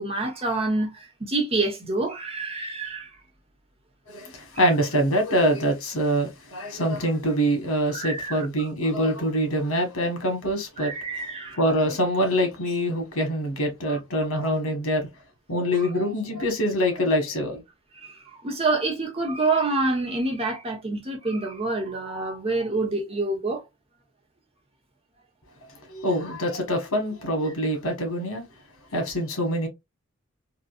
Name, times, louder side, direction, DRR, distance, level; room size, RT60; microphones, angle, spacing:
voice 1, 0.0-3.1 7.9-8.4 10.8-11.6 18.0-23.6, right 3 dB, 30° right, 1.1 m, -27 dB
voice 2, 4.1-10.9 11.6-15.1 15.5-17.6 25.9-28.4 28.9-29.7, equal, 90° left, 1.4 m, -25 dB
3.8 x 2.4 x 2.4 m
head